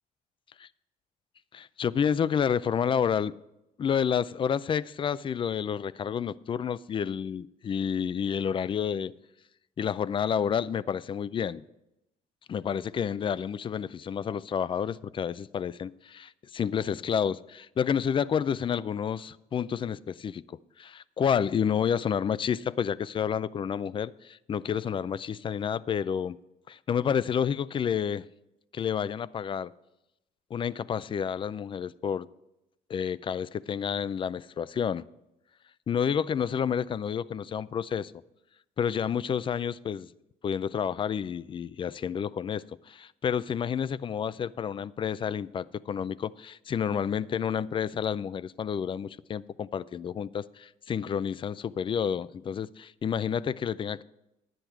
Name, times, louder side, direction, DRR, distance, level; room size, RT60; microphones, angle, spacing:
voice 1, 1.5-3.3 3.8-9.1 9.8-11.6 12.5-26.4 26.7-28.3 28.7-29.7 30.5-32.3 32.9-35.1 35.9-38.1 38.8-40.1 40.4-54.0, left 7 dB, 30° left, 18 dB, 0.4 m, -30 dB
10.5 x 10.0 x 4.5 m, 0.89 s
cardioid pair, 110°, 17 cm